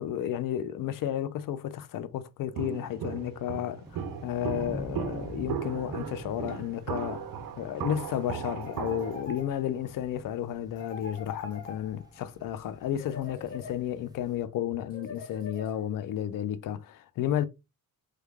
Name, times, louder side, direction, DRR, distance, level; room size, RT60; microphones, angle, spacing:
voice 1, 0.0-7.2 7.6-17.5, left 11 dB, 65° left, 0.5 m, -32 dB
Walk footsteps, 2.5-9.2, right 8 dB, 70° right, 0.6 m, -37 dB
sound 1, 3.8-14.4, right 1 dB, 10° right, 0.3 m, -46 dB
sound 2, 8.6-9.9 10.8-12.3 13.0-14.2 14.9-16.1, left 3 dB, 25° left, 1.2 m, -44 dB
3.2 x 2.2 x 3.4 m
wide cardioid pair, 155°, 36 cm